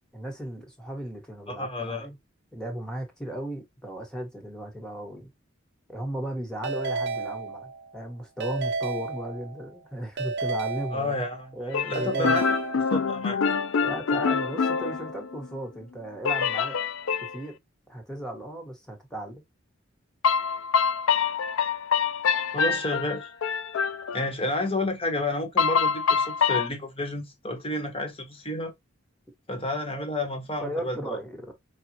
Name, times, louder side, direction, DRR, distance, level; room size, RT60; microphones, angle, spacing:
voice 1, 0.1-2.2 2.5-5.3 5.9-11.2 11.5-12.4 13.8-16.9 17.3-17.6 17.9-19.4 29.9-30.1 30.6-31.5, right 1 dB, 5° left, 1.3 m, -36 dB
voice 2, 1.5-2.1 10.9-11.5 11.9-12.4 12.9-13.4 22.5-23.3 24.1-28.7 29.5-31.2, left 2 dB, 30° left, 1.2 m, -30 dB
Keyboard (musical) / Ringtone, 6.6-8.0 8.4-9.7 10.2-11.5 11.9-13.3, right 4 dB, 55° right, 0.7 m, -32 dB
sound 1, 11.7-15.6 16.2-17.4 20.2-24.3 25.6-26.7, left 6 dB, 70° left, 0.4 m, -25 dB
4.9 x 2.4 x 2.9 m
head